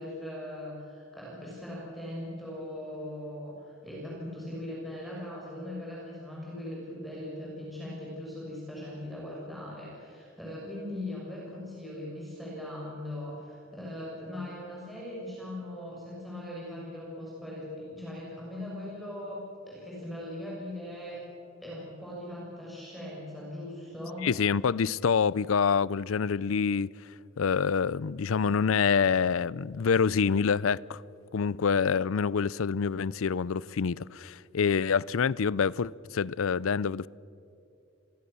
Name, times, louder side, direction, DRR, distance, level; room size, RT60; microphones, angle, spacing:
voice 1, 0.0-21.2 21.6-24.3, left 1 dB, ahead, 6.9 m, -40 dB
voice 2, 24.2-26.9 27.4-31.0 31.3-37.1, left 6 dB, 80° left, 0.5 m, -26 dB
29.0 x 22.5 x 7.0 m
head